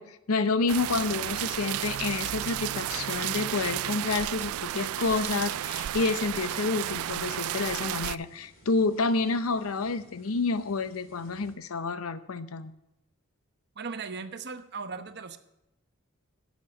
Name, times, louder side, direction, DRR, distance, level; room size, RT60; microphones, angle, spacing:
voice 1, 0.0-12.7, left 3 dB, 75° left, 12 dB, 0.7 m, -29 dB
sound 1, 0.7-8.2, right 12 dB, 75° right, 0.3 m, -32 dB
sound 2, 0.9-11.5, equal, 40° left, 2.5 m, -52 dB
voice 2, 13.8-15.4, right 5 dB, 50° right, 9 dB, 0.9 m, -37 dB
11.0 x 7.4 x 7.4 m, 0.88 s
head